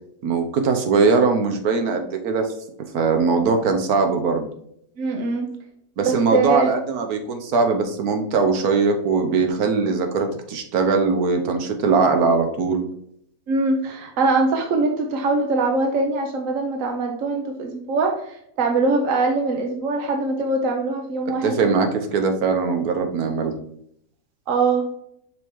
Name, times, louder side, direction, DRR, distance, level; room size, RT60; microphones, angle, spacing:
voice 1, 0.2-2.5 2.9-4.5 6.0-12.9 21.4-23.5, right 4 dB, 90° right, 5 dB, 1.4 m, -21 dB
voice 2, 5.0-5.5 6.0-6.7 13.5-21.7 24.5-24.9, right 3 dB, 65° right, 3 dB, 1.2 m, -22 dB
5.7 x 4.7 x 3.5 m, 0.72 s
omnidirectional pair, 1.5 m